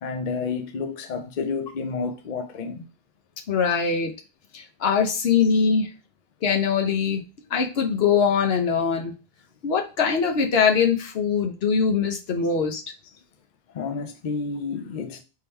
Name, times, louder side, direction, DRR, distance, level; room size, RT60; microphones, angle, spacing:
voice 1, 0.0-2.9 13.7-15.2, left 4 dB, 55° left, 0.6 m, -30 dB
voice 2, 3.5-4.1 4.5-5.9 6.4-7.2 7.5-9.1 9.6-12.8, left 6 dB, 75° left, 1.0 m, -22 dB
3.7 x 2.9 x 4.3 m
omnidirectional pair, 1.0 m